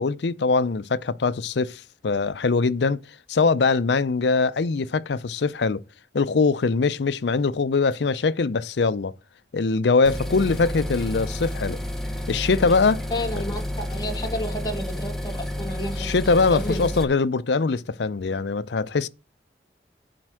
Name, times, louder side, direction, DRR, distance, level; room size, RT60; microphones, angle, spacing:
voice 1, 0.0-3.0 3.3-5.8 6.1-9.1 9.5-11.8 12.3-13.0 16.0-19.1, left 4 dB, 75° left, 0.5 m, -22 dB
sound 1, 10.0-17.0, left 1 dB, ahead, 0.8 m, -30 dB
voice 2, 13.1-16.1 16.5-16.9, left 1 dB, 20° left, 1.6 m, -31 dB
7.7 x 4.5 x 6.3 m
head